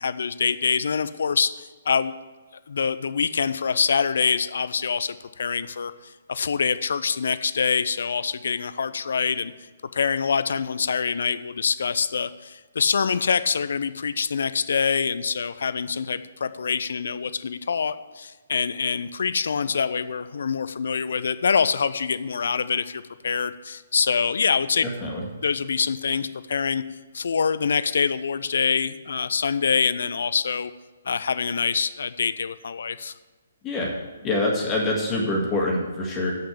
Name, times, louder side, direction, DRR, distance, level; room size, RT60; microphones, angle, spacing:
voice 1, 0.0-2.1 2.7-5.9 6.3-9.5 9.9-24.8 25.4-26.8 27.1-30.7 31.1-33.1, left 6 dB, 65° left, 14 dB, 0.5 m, -25 dB
voice 2, 24.8-25.3 33.6-33.9 34.2-36.4, left 2 dB, 20° left, -1 dB, 1.7 m, -25 dB
7.8 x 6.5 x 8.2 m, 1.3 s
figure-of-eight pair, 130°, 0 cm